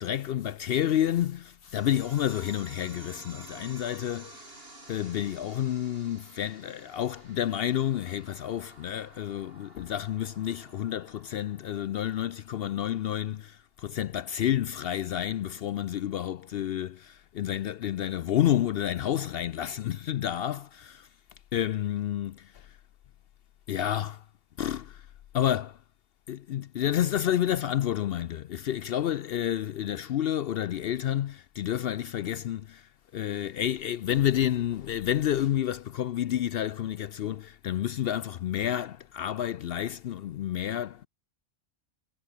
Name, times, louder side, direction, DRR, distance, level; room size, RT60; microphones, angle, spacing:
voice 1, 0.0-4.4 4.9-21.1 21.5-22.7 23.7-24.2 24.6-25.0 25.3-25.8 26.3-32.9 33.1-41.1, left 11 dB, 65° left, 0.7 m, -30 dB
sound 1, 1.7-12.7, right 2 dB, 55° right, 5.2 m, -51 dB
omnidirectional pair, 1.2 m